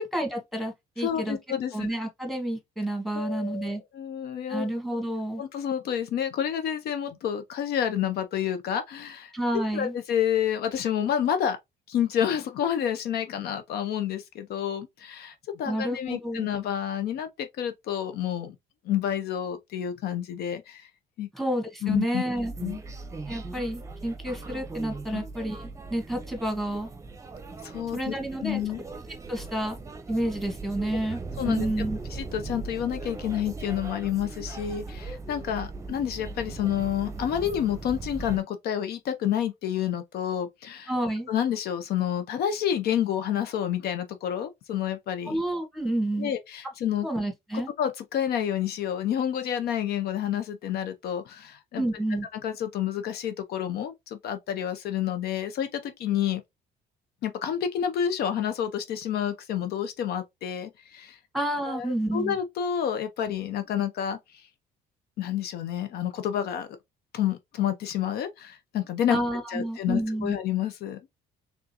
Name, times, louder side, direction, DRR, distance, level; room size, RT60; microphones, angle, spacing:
voice 1, 0.0-1.4 1.7-3.8 4.5-5.4 9.3-9.9 15.6-16.5 21.3-22.5 23.3-26.9 27.9-28.6 29.3-29.8 30.1-32.0 40.9-41.3 45.2-46.3 47.0-47.7 51.7-52.3 61.3-62.4 69.1-70.4, right 1 dB, ahead, 1.6 m, -30 dB
voice 2, 1.0-1.9 3.1-4.7 5.4-9.3 9.7-11.6 11.9-18.6 18.8-20.9 21.2-21.3 21.8-22.2 22.6-22.8 25.1-25.2 27.6-28.1 28.4-28.8 31.4-31.7 32.1-40.9 41.3-45.4 46.2-47.1 47.8-51.8 52.3-56.4 57.2-61.2 61.7-64.4 65.2-66.7 67.1-69.2 69.5-71.0, left 9 dB, 70° left, 0.6 m, -29 dB
sound 1, 22.3-38.4, right 3 dB, 20° right, 0.7 m, -39 dB
3.7 x 3.6 x 2.8 m
cardioid pair, 110°, 17 cm